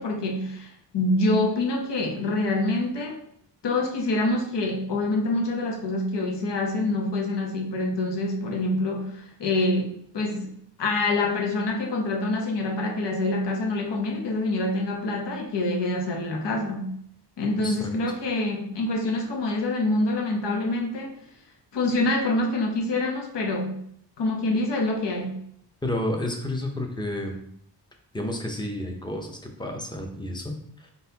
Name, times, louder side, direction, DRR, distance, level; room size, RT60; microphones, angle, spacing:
voice 1, 0.0-3.2 3.6-10.5 10.8-16.9 17.4-21.2 21.7-23.8 24.2-25.4, left 2 dB, 75° left, 1 dB, 0.9 m, -26 dB
voice 2, 25.8-27.4 28.1-30.9, left 1 dB, 10° left, 2 dB, 0.6 m, -31 dB
4.4 x 3.9 x 2.7 m, 0.69 s
wide cardioid pair, 145°, 42 cm